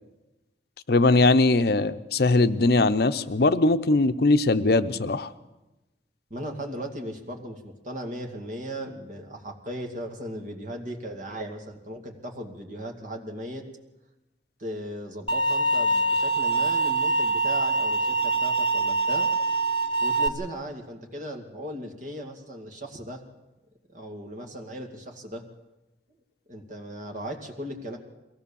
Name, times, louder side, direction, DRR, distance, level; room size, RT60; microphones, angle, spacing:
voice 1, 0.9-5.3, left 2 dB, 60° left, 11 dB, 0.7 m, -21 dB
voice 2, 6.3-13.6 14.6-19.3 20.0-23.2 23.9-25.5 26.5-28.0, right 1 dB, 45° right, 2 dB, 2.3 m, -37 dB
sound 1, 15.3-20.3, right 2 dB, 30° left, 1.3 m, -24 dB
22.5 x 17.0 x 7.1 m, 1.0 s
head